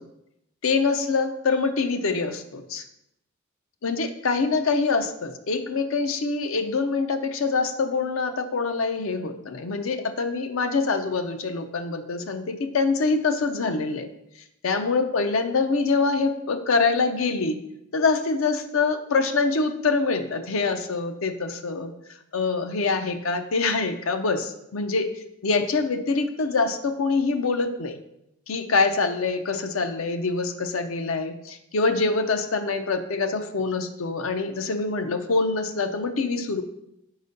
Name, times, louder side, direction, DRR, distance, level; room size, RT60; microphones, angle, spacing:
voice 1, 0.6-2.8 3.8-14.1 14.6-17.6 17.9-21.9 22.3-25.1 25.4-28.0 28.5-36.6, left 4 dB, 70° left, 8 dB, 0.6 m, -25 dB
5.1 x 4.0 x 5.2 m, 0.81 s
head